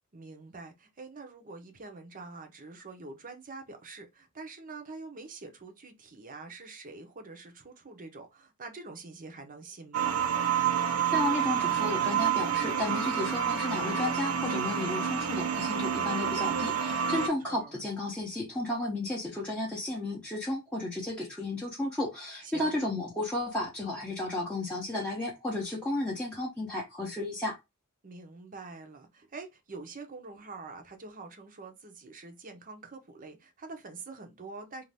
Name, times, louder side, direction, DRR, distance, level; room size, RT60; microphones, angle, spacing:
voice 1, 0.1-10.3 17.1-17.8 22.4-22.7 28.0-34.8, right 3 dB, 40° right, 0.7 m, -45 dB
sound 1, 9.9-17.3, right 8 dB, 75° right, 0.5 m, -29 dB
voice 2, 11.1-27.6, left 1 dB, 5° left, 0.7 m, -33 dB
2.6 x 2.4 x 3.3 m
head